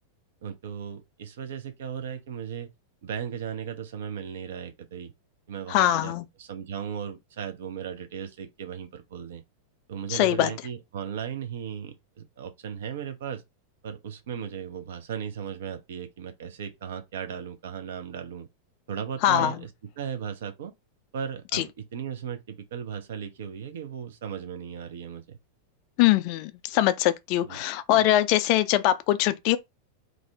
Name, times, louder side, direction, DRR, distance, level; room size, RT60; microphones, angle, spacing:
voice 1, 0.4-2.7 3.0-5.1 5.5-9.4 9.9-13.4 13.8-18.5 18.9-19.7 20.0-20.7 21.1-25.4 27.4-27.6, right 8 dB, 60° right, 0.4 m, -36 dB
voice 2, 5.7-6.2 10.1-10.5 19.2-19.5 21.5-21.6 26.0-29.6, left 13 dB, 45° left, 0.3 m, -22 dB
2.4 x 2.0 x 3.3 m
figure-of-eight pair, 90°, 0 cm